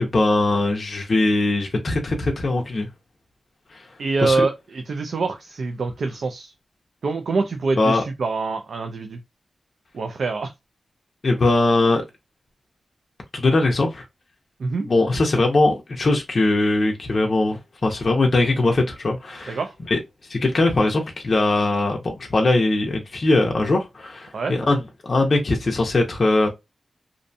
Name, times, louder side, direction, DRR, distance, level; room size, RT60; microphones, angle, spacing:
voice 1, 0.0-2.9 3.7-3.8 4.2-4.5 7.8-8.0 11.2-12.0 13.3-14.0 14.8-19.6 19.9-20.0 20.3-26.5, left 2 dB, 40° left, 0.5 m, -20 dB
voice 2, 4.0-6.5 7.0-9.2 9.9-10.5 14.6-14.9 19.5-19.7 24.3-24.5, right 3 dB, 65° right, 0.3 m, -25 dB
2.5 x 2.1 x 2.6 m
wide cardioid pair, 170°, 0 cm